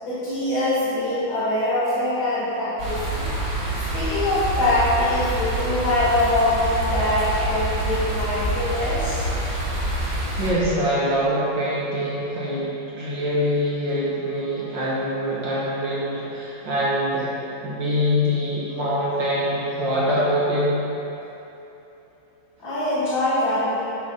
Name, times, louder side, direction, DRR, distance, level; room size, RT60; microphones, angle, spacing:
voice 1, 0.0-3.2 3.9-9.2 22.6-24.0, left 1 dB, 75° left, -11 dB, 2.7 m, -23 dB
sound 1, 2.8-10.5, right 1 dB, 50° right, 2.1 m, -26 dB
voice 2, 10.4-17.3 17.6-20.8, equal, 70° right, -8 dB, 2.1 m, -24 dB
10.5 x 6.3 x 3.9 m, 3.0 s
omnidirectional pair, 2.1 m